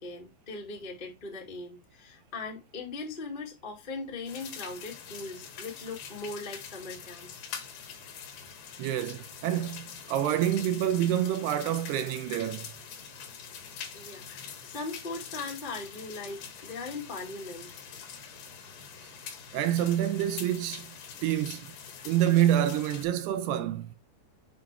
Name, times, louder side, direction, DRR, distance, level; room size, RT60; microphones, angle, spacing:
voice 1, 0.0-7.4 13.9-17.7, left 3 dB, 20° left, 1.4 m, -39 dB
sound 1, 4.3-23.0, left 7 dB, 70° left, 3.7 m, -44 dB
voice 2, 8.8-12.7 19.5-20.9 21.2-21.7 22.0-24.0, right 11 dB, 80° right, 2.7 m, -27 dB
8.7 x 5.5 x 3.4 m
omnidirectional pair, 5.0 m